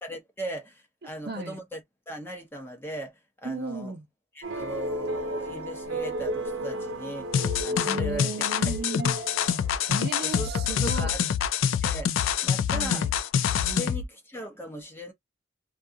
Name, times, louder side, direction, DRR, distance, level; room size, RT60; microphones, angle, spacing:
voice 1, 0.0-1.8 2.1-3.9 4.4-7.3 7.6-8.3 8.6-8.7 10.2-11.2 11.8-12.1 12.4-13.0 13.8-15.1, right 1 dB, 10° left, 0.7 m, -38 dB
voice 2, 1.0-1.6 3.4-4.1 7.8-9.1 9.9-11.1 12.7-13.1 13.6-14.0, right 3 dB, 50° right, 0.6 m, -35 dB
sound 1, 4.4-11.0, right 1 dB, 85° right, 0.8 m, -34 dB
sound 2, 7.3-14.1, left 8 dB, 70° left, 0.3 m, -26 dB
2.4 x 2.3 x 2.7 m
head